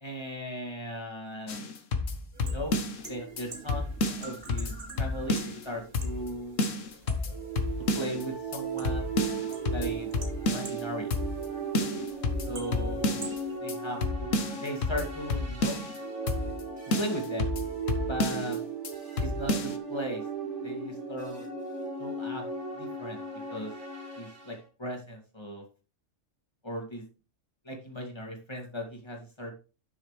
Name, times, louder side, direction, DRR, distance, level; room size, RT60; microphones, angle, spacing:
voice 1, 0.0-1.6 2.4-2.8 3.1-4.7 5.0-6.6 7.9-9.1 9.7-10.1 10.4-11.1 12.5-13.3 13.6-15.8 17.0-17.5 17.9-18.6 19.2-20.2 20.6-21.5 22.0-22.4 22.8-23.2 23.5-23.7 24.2-25.6 26.6-27.0 27.6-29.5, equal, 20° left, 0 dB, 2.5 m, -37 dB
sound 1, 1.5-3.1 3.4-3.5 3.7-5.7 5.9-6.3 6.6-8.2 8.5-8.6 8.8-10.8 11.1-11.5 11.7-13.4 13.7-13.8 14.0-16.0 16.3-16.6 16.9-18.6 18.8-18.9 19.2-19.8, left 2 dB, 80° left, 1.5 m, -30 dB
sound 2, 2.3-13.6, right 3 dB, 50° right, 1.8 m, -47 dB
sound 3, 7.3-24.6, right 4 dB, 65° right, 3.2 m, -36 dB
11.5 x 6.3 x 3.3 m, 0.34 s
omnidirectional pair, 1.3 m